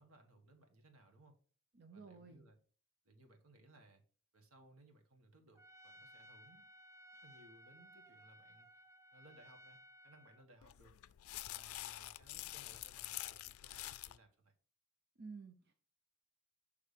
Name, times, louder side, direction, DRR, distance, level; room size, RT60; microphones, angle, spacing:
voice 1, 0.0-1.4 1.9-2.6 3.0-4.0 4.3-6.6 7.2-8.7 9.1-10.9 11.5-14.5, right 1 dB, 85° right, 4 dB, 1.4 m, -64 dB
voice 2, 1.7-2.5 15.2-15.7, right 4 dB, 50° right, 6 dB, 0.7 m, -53 dB
Trumpet, 5.6-10.5, equal, 15° right, 0.3 m, -60 dB
sound 1, 10.6-14.2, left 15 dB, 85° left, 0.4 m, -47 dB
6.5 x 3.5 x 5.1 m, 0.42 s
head